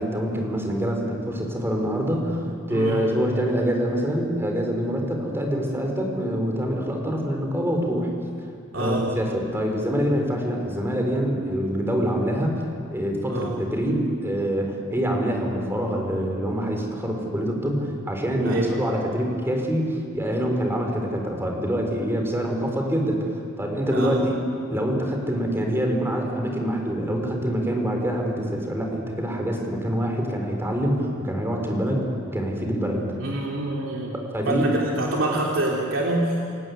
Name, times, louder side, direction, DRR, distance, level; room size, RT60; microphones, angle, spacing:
voice 1, 0.0-8.1 8.7-12.6 12.9-23.3 23.6-24.4 24.7-33.0 34.3-34.7, equal, 10° right, 2 dB, 4.4 m, -25 dB
voice 2, 8.7-9.0 13.3-13.5 18.4-18.7 23.9-24.1 33.2-34.1 34.5-36.5, right 1 dB, 70° right, -3 dB, 3.4 m, -26 dB
29.5 x 17.5 x 9.6 m, 2.4 s
head